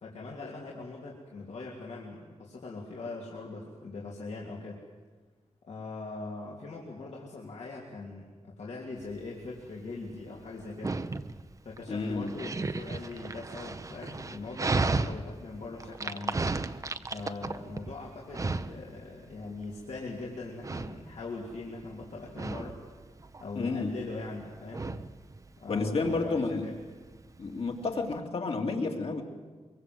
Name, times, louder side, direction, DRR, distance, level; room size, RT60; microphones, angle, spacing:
voice 1, 0.0-4.8 5.7-11.0 11.6-16.4 17.0-22.8 23.4-24.9 25.6-26.7, left 3 dB, 80° left, -3 dB, 3.3 m, -41 dB
Dog, 9.0-28.2, right 3 dB, 30° right, 0.7 m, -36 dB
voice 2, 11.9-12.3 23.6-23.9 24.9-25.0 25.7-26.7 27.4-29.2, left 3 dB, 60° left, 2 dB, 2.7 m, -31 dB
24.0 x 23.5 x 7.8 m, 1.3 s
wide cardioid pair, 160°, 11 cm